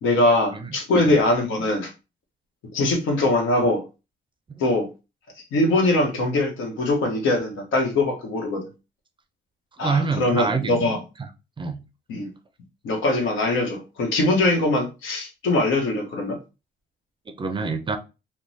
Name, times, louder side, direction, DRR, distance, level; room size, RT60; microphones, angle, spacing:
voice 1, 0.0-1.9 2.7-3.8 4.6-4.9 5.5-8.7 9.8-11.0 12.1-12.3 12.8-16.4, left 2 dB, 80° left, 2 dB, 1.0 m, -22 dB
voice 2, 9.8-10.8 11.2-11.3 11.6-11.8 17.3-18.0, right 4 dB, 25° right, 7 dB, 0.4 m, -26 dB
3.0 x 2.1 x 2.6 m, 0.29 s
cardioid pair, 90°, 20 cm